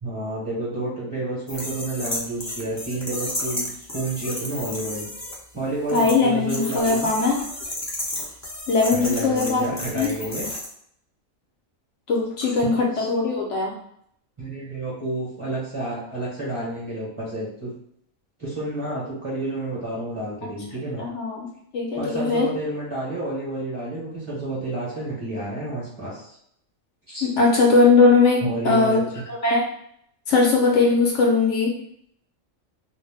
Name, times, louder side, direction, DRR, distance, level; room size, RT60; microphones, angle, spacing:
voice 1, 0.0-5.1 5.5-7.1 8.9-10.5 12.6-13.1 14.4-17.7 18.4-21.0 22.0-26.4 27.1-27.3 28.4-29.2, right 2 dB, 30° right, -8 dB, 0.8 m, -30 dB
sound 1, 1.5-5.3 5.9-6.1 6.5-10.6, left 1 dB, 25° left, 0.3 m, -32 dB
voice 2, 5.9-7.4 8.7-9.7 9.9-10.1 12.1-13.7 21.0-21.5 21.7-22.5 27.2-29.0 29.3-29.6 30.3-31.7, left 4 dB, 65° left, -1 dB, 0.9 m, -19 dB
2.5 x 2.1 x 3.3 m, 0.69 s
omnidirectional pair, 1.4 m